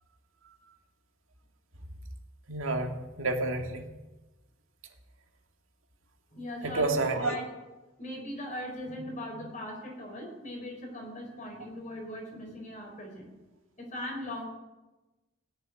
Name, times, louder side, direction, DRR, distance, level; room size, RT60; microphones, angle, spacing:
voice 1, 2.5-3.9 6.6-7.4, right 2 dB, 85° right, 4 dB, 2.0 m, -29 dB
voice 2, 6.3-7.5 8.0-13.3 13.8-14.5, left 1 dB, 35° left, 1 dB, 4.0 m, -39 dB
17.5 x 6.9 x 9.7 m, 1.1 s
head